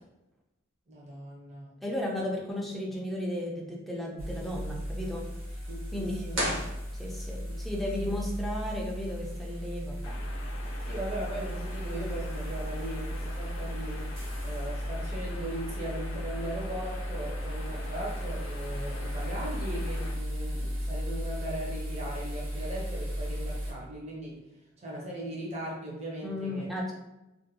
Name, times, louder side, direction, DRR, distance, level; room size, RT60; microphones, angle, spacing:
voice 1, 0.9-1.7 5.7-6.5 7.4-8.1 10.9-14.1 14.4-24.4 24.8-26.7, right 1 dB, 35° right, -3 dB, 0.7 m, -39 dB
voice 2, 1.8-5.2 5.9-6.5 7.0-10.2 26.2-26.9, left 1 dB, ahead, -3 dB, 0.4 m, -34 dB
sound 1, 4.2-23.7, equal, 90° right, 1.2 m, -35 dB
sound 2, 6.3-7.5, equal, 65° right, 1.0 m, -33 dB
sound 3, 10.0-20.1, left 2 dB, 75° left, 0.5 m, -46 dB
2.5 x 2.2 x 2.7 m, 0.95 s
head